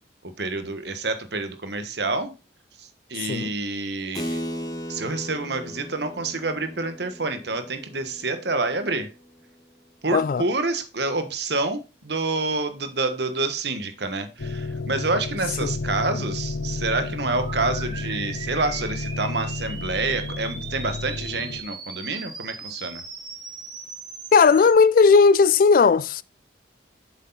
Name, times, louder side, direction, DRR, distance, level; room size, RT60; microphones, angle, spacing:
voice 1, 0.2-2.3 2.8-4.4 4.9-9.1 10.0-23.0, right 3 dB, 65° right, 1.3 m, -28 dB
voice 2, 3.2-3.5 10.1-10.4 15.6-15.7 24.3-26.2, left 5 dB, 50° left, 0.3 m, -16 dB
Keyboard (musical), 4.1-10.2, equal, 20° left, 1.3 m, -37 dB
sound 1, 14.4-21.6, left 2 dB, 80° left, 0.7 m, -32 dB
sound 2, 17.3-24.7, right 4 dB, 25° right, 1.4 m, -39 dB
8.1 x 6.5 x 4.0 m
head